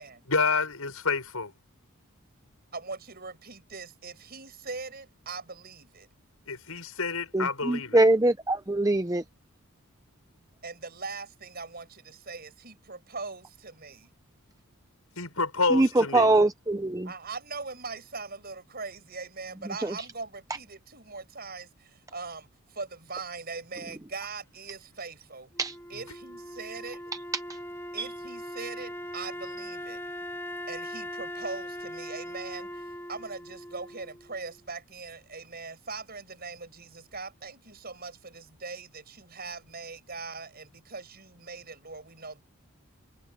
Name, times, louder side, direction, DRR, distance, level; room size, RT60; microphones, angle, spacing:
voice 1, 0.3-1.6 6.5-8.0 15.2-16.3 25.9-26.2, left 4 dB, 80° left, 6.8 m, -29 dB
voice 2, 2.7-6.1 10.6-14.1 17.0-25.5 25.9-27.0 27.9-30.0 30.7-42.4, right 4 dB, 45° right, 7.1 m, -41 dB
voice 3, 7.3-9.2 15.7-15.9 16.1-17.1 19.8-19.9 25.6-25.8 28.0-28.1, right 2 dB, 15° right, 0.6 m, -23 dB
Wind instrument woodwind instrument, 25.5-34.6, equal, 10° left, 3.3 m, -40 dB
head